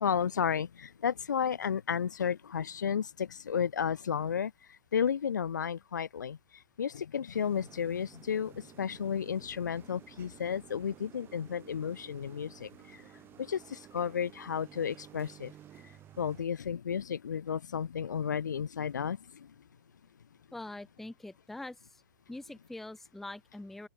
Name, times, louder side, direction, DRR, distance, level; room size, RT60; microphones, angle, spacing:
voice 1, 0.0-4.5 4.9-6.4 6.8-12.7 13.4-15.5 16.2-19.2, left 7 dB, 65° left, 0.7 m, -32 dB
sound 1, 7.3-16.4, right 11 dB, 20° right, 2.5 m, -54 dB
voice 2, 20.5-22.0 22.3-23.9, left 2 dB, ahead, 0.5 m, -44 dB
open air
figure-of-eight pair, 115°, 11 cm